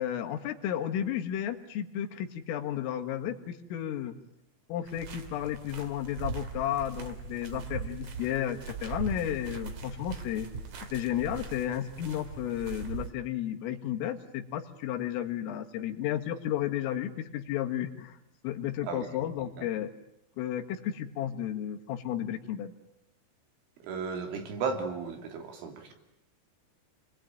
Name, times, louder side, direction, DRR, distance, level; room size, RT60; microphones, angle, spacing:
voice 1, 0.0-4.1 4.7-10.5 10.9-18.2 18.4-19.9 20.4-22.7, left 11 dB, 80° left, 5 dB, 4.3 m, -33 dB
sound 1, 4.8-13.1, right 5 dB, 45° right, 2.5 m, -40 dB
voice 2, 23.8-25.9, right 5 dB, 70° right, 5 dB, 5.3 m, -35 dB
29.5 x 22.0 x 9.1 m, 0.83 s
omnidirectional pair, 5.9 m